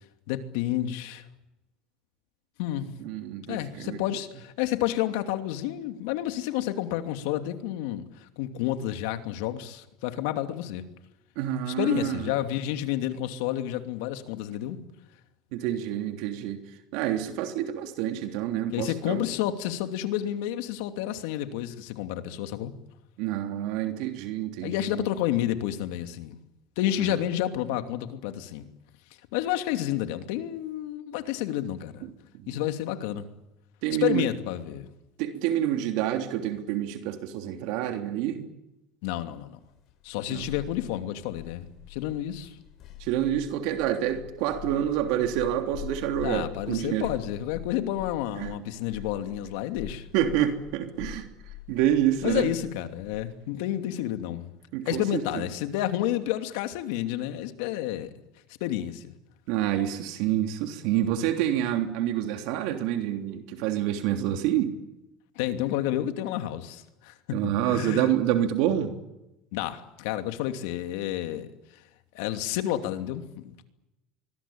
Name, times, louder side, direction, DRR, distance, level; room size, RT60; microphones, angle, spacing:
voice 1, 0.3-1.2 2.6-2.9 3.5-10.9 11.7-14.8 18.7-22.7 24.6-26.4 26.8-28.7 29.3-32.1 32.5-33.3 34.0-34.9 39.0-39.6 40.0-42.5 46.2-50.1 52.2-54.5 54.9-58.1 58.6-59.1 65.4-68.1 69.5-71.5 71.7-71.8 72.1-73.7, left 12 dB, 80° left, 2.7 m, -30 dB
voice 2, 3.0-4.0 11.3-12.3 15.5-16.6 16.9-19.2 23.2-25.0 27.0-27.1 32.4-32.6 33.8-34.3 35.2-38.5 40.3-40.4 43.0-47.1 48.4-48.5 50.1-51.3 51.7-52.5 54.7-55.4 59.5-64.7 67.3-68.9, right 11 dB, 70° right, 3.3 m, -27 dB
sound 1, 39.8-53.2, left 10 dB, 50° left, 5.3 m, -44 dB
25.0 x 22.0 x 8.8 m
supercardioid pair, 130°, 0 cm